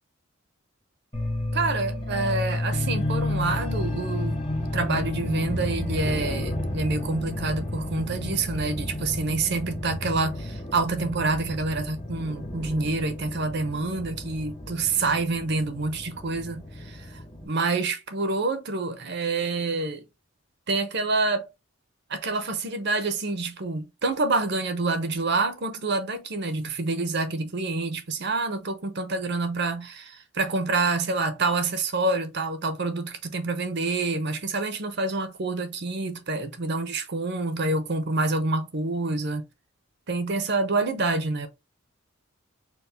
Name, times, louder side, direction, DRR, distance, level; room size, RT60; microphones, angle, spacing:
sound 1, 1.1-17.5, left 1 dB, 30° left, 1.3 m, -31 dB
voice 1, 1.5-20.0 20.7-21.5 22.1-39.5 40.1-41.5, right 3 dB, 55° right, 0.8 m, -27 dB
4.6 x 2.3 x 3.4 m
head